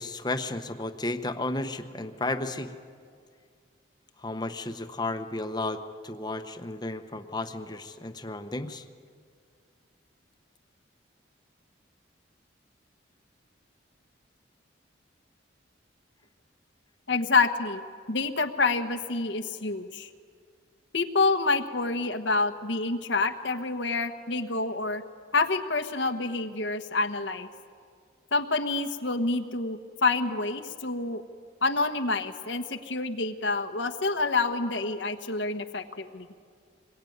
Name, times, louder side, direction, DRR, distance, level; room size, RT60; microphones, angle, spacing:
voice 1, 0.0-2.7 4.2-8.8, left 2 dB, 20° left, 8 dB, 1.1 m, -33 dB
voice 2, 17.1-17.8 18.1-20.1 20.9-25.0 25.3-27.5 28.3-31.2 31.6-36.3, left 3 dB, 70° left, 5 dB, 1.3 m, -27 dB
25.5 x 21.5 x 9.5 m, 2.1 s
head